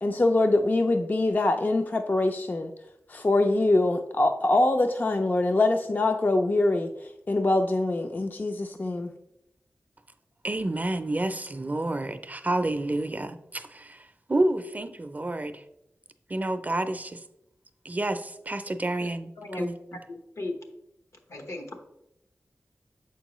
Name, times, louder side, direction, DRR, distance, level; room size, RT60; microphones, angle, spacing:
voice 1, 0.0-2.7 3.1-9.1, left 2 dB, 35° left, 6 dB, 0.4 m, -24 dB
voice 2, 10.4-13.7 14.3-15.5 16.3-17.2 17.8-19.3 19.6-19.7, right 2 dB, 30° right, 9 dB, 0.4 m, -29 dB
voice 3, 19.4-20.5 21.3-21.7, left 2 dB, 75° left, 4 dB, 1.0 m, -36 dB
7.1 x 4.5 x 3.0 m, 0.83 s
wide cardioid pair, 75°, 5 cm